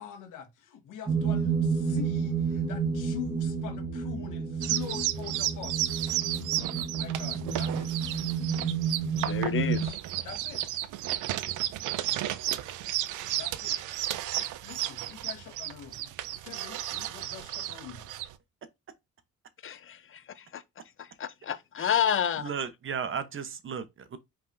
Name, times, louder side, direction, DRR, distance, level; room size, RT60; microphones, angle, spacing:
voice 1, 0.0-6.0 6.9-7.9 10.2-10.7 13.3-13.8 14.3-18.1, left 9 dB, 85° left, 1.2 m, -44 dB
sound 1, 1.1-9.9, right 6 dB, 15° right, 1.3 m, -30 dB
sound 2, 4.6-18.3, right 14 dB, 85° right, 0.5 m, -33 dB
voice 2, 9.2-10.0 19.6-20.6 21.0-22.5, left 9 dB, 45° left, 0.6 m, -30 dB
voice 3, 22.4-24.2, right 6 dB, 40° right, 0.8 m, -35 dB
5.3 x 3.4 x 2.5 m
cardioid pair, 90°, 30 cm